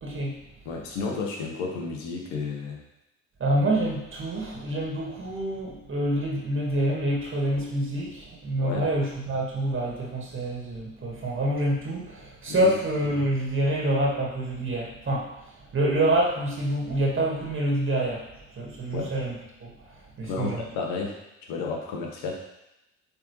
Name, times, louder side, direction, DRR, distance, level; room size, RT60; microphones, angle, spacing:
voice 1, 0.0-0.3 3.4-15.3 15.7-18.2 18.5-19.9 20.2-20.6, right 1 dB, 35° right, -3 dB, 1.9 m, -27 dB
voice 2, 0.6-2.8 8.6-8.9 12.5-12.7 18.9-19.1 20.2-22.3, left 4 dB, 75° left, 0 dB, 1.6 m, -32 dB
8.3 x 3.9 x 3.3 m, 0.88 s
hypercardioid pair, 70°, 36 cm